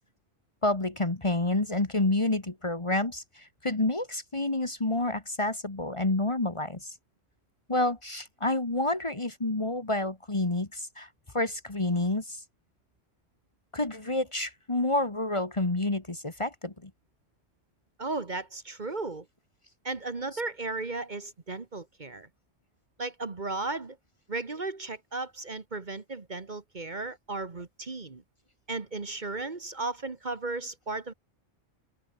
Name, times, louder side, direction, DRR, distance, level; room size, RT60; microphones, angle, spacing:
voice 1, 0.6-6.9 7.7-11.1 11.3-12.4 13.7-16.9 20.3-20.4, left 2 dB, 25° left, 1.7 m, -29 dB
voice 2, 18.0-19.3 19.8-22.3 23.0-24.0 24.3-28.2 28.7-31.1, right 3 dB, 40° right, 1.6 m, -35 dB
omnidirectional pair, 1.2 m